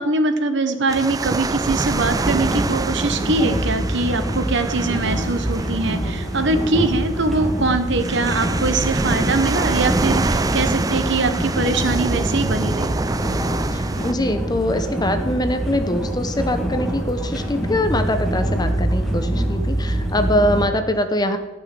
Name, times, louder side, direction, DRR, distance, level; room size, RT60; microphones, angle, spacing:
voice 1, 0.0-13.0, right 3 dB, 65° right, 8 dB, 1.3 m, -22 dB
sound 1, 0.9-14.1, right 3 dB, 20° right, 0.4 m, -26 dB
sound 2, 2.0-20.6, right 1 dB, ahead, 2.1 m, -25 dB
voice 2, 13.7-21.4, left 1 dB, 20° left, 8 dB, 0.9 m, -23 dB
14.0 x 6.2 x 9.3 m, 1.1 s
head